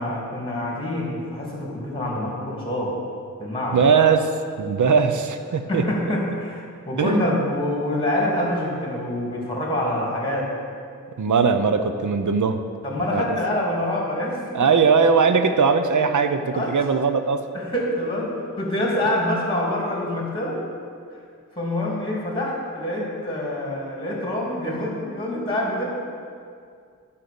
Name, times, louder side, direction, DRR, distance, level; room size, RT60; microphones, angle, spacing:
voice 1, 0.0-3.0 3.4-3.8 5.7-10.5 12.8-14.7 16.5-16.7 17.5-20.6 21.6-25.8, left 1 dB, 15° left, -4 dB, 2.8 m, -26 dB
voice 2, 3.7-4.3 4.6-5.9 7.0-7.3 11.2-12.6 13.1-13.4 14.5-17.4, right 5 dB, 70° right, 8 dB, 0.7 m, -20 dB
10.5 x 5.7 x 6.9 m, 2.2 s
wide cardioid pair, 80°, 31 cm